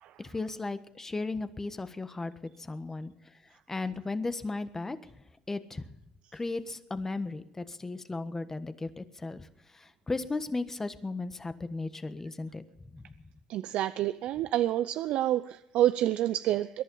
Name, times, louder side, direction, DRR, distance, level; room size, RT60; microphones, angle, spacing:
voice 1, 0.2-2.3 2.6-3.1 3.7-5.0 5.5-5.8 6.3-9.5 9.7-12.6 12.9-13.0, left 3 dB, 20° left, 11 dB, 1.4 m, -35 dB
voice 2, 13.5-16.8, right 13 dB, 65° right, 13 dB, 0.6 m, -28 dB
22.0 x 11.0 x 5.6 m, 0.87 s
supercardioid pair, 90°, 2 cm